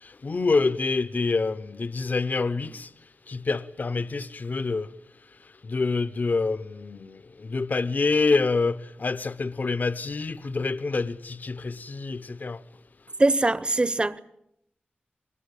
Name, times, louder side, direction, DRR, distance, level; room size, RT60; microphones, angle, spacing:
voice 1, 0.0-2.9 3.3-4.9 5.7-12.6, left 3 dB, 55° left, 0.9 m, -27 dB
voice 2, 13.2-14.2, right 2 dB, 30° right, 1.0 m, -22 dB
25.5 x 21.0 x 8.6 m
wide cardioid pair, 70°, 3 cm